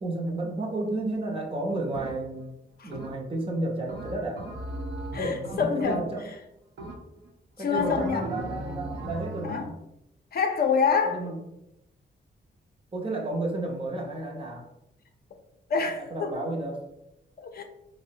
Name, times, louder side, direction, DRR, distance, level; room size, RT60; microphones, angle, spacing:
voice 1, 0.0-2.6 2.8-4.4 5.2-6.3 7.6-9.8 11.1-11.4 12.9-14.7 16.0-16.8, right 2 dB, 30° right, 0 dB, 0.6 m, -32 dB
sound 1, 1.9-2.5 2.9-3.4 3.9-6.4 6.8-7.3 7.7-9.7, right 1 dB, 75° right, 0.7 m, -37 dB
voice 2, 5.1-6.1 7.6-8.5 9.4-9.6 10.3-11.2 15.7-16.3 17.4-17.6, left 5 dB, 55° left, 4 dB, 0.5 m, -26 dB
4.7 x 2.0 x 2.7 m, 0.84 s
wide cardioid pair, 150°, 19 cm